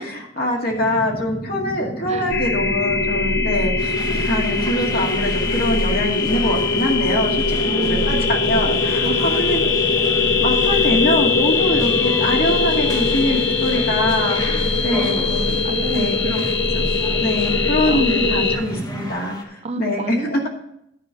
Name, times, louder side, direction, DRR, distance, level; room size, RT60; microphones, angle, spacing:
voice 1, 0.0-9.6 10.4-15.6 15.9-16.4 16.7-16.9 17.2-20.4, left 1 dB, 55° left, -1 dB, 2.1 m, -23 dB
sound 1, 0.7-19.1, right 1 dB, ahead, 1.3 m, -32 dB
sound 2, 2.3-18.6, left 4 dB, 75° left, 0.8 m, -21 dB
sound 3, 3.8-19.4, left 1 dB, 20° left, 1.2 m, -35 dB
voice 2, 7.7-8.3 9.0-9.3 10.7-10.9 14.9-16.5 17.5-18.4 19.6-20.5, right 3 dB, 35° right, 9 dB, 0.5 m, -29 dB
10.5 x 4.6 x 7.0 m, 0.77 s
head